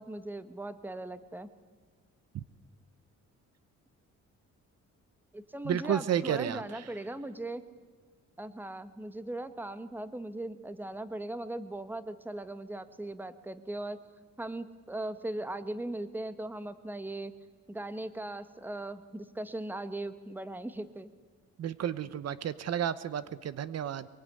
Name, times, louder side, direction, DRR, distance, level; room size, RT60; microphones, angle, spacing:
voice 1, 0.0-1.5 5.3-7.6 8.4-14.0 14.4-17.3 17.7-21.1, right 1 dB, 5° right, 12 dB, 1.2 m, -39 dB
voice 2, 5.6-6.8 21.6-24.1, right 9 dB, 55° right, 15 dB, 0.8 m, -32 dB
24.0 x 22.5 x 9.6 m, 1.4 s
cardioid pair, 155°, 30 cm